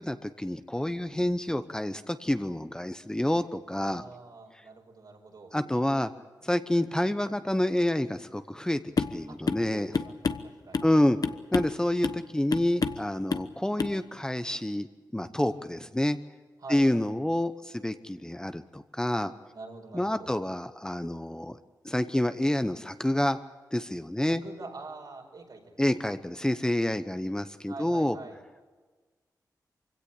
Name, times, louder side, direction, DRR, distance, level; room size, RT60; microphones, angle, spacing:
voice 1, 0.0-4.0 5.5-6.1 6.4-8.8 9.1-9.9 10.8-11.2 11.5-14.9 15.1-16.2 16.7-19.3 19.9-21.6 21.8-23.4 23.7-24.4 25.8-28.2, left 1 dB, 10° left, 10 dB, 0.9 m, -28 dB
voice 2, 3.8-5.5 9.3-9.4 9.7-10.9 15.4-15.9 16.6-16.8 19.5-20.3 24.4-25.6 25.9-26.0 27.7-28.4, right 3 dB, 70° right, 2 dB, 5.1 m, -45 dB
sound 1, 9.0-9.2 9.5-9.7 9.9-10.9 11.2-11.8 12.0-12.2 12.5-13.0 13.3-13.5 13.8-14.0, left 5 dB, 60° left, 1.1 m, -29 dB
24.5 x 17.0 x 8.5 m, 1.4 s
wide cardioid pair, 80°, 7 cm